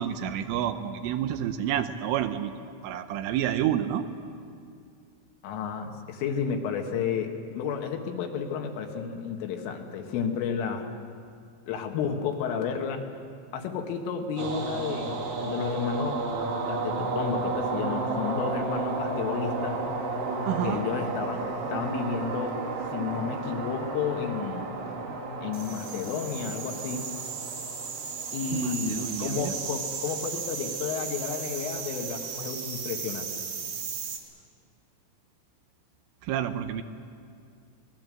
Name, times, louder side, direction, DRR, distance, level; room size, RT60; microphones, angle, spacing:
voice 1, 0.0-2.5 2.8-4.1 20.5-20.8 28.5-29.6 36.2-36.8, right 10 dB, 80° right, 9 dB, 3.2 m, -29 dB
voice 2, 5.4-10.9 11.7-13.1 13.5-16.2 16.7-19.8 20.6-21.4 21.7-22.6 22.9-24.7 25.4-27.1 28.3-33.5, left 6 dB, 75° left, 4 dB, 4.0 m, -32 dB
sound 1, 14.4-34.2, right 3 dB, 45° right, 3.0 m, -33 dB
25.0 x 20.0 x 7.6 m, 2.4 s
omnidirectional pair, 6.0 m